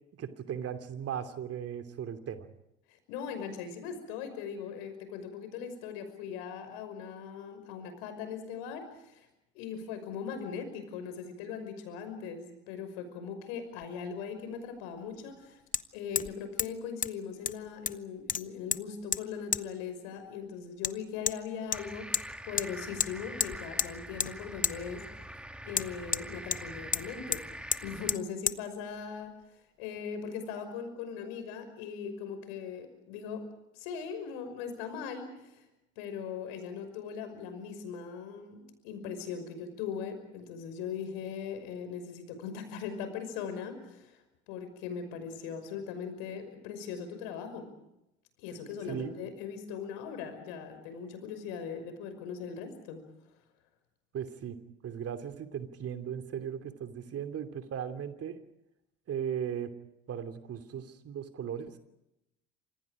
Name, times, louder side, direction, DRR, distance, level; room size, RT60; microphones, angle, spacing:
voice 1, 0.2-2.5 48.9-49.1 54.1-54.6 54.8-58.4 59.1-59.7 60.1-61.8, right 8 dB, 45° right, 8 dB, 2.9 m, -37 dB
voice 2, 3.1-9.3 9.5-15.6 15.9-25.3 25.6-27.4 27.8-29.4 29.8-33.5 33.8-35.6 36.0-44.2 44.5-47.7 48.4-53.1, left 6 dB, 65° left, 9 dB, 5.7 m, -40 dB
Hammer, 13.8-13.9 15.7-15.8 16.2-16.3 16.6-16.7 17.0-17.1 17.5-18.0 18.3-18.8 19.1-19.2 19.5-19.6 20.8-20.9 21.3-21.4 21.7-22.3 22.6-22.7 23.0-23.1 23.4-23.9 24.2-24.3 24.6-24.8 25.7-26.6 26.9-27.1 27.3-27.4 27.7-27.8 28.1-28.2 28.5-28.6, left 7 dB, 25° left, 0.8 m, -30 dB
sound 1, 21.7-28.2, equal, 5° right, 2.2 m, -44 dB
29.0 x 26.5 x 5.0 m, 0.88 s
figure-of-eight pair, 60°, 34 cm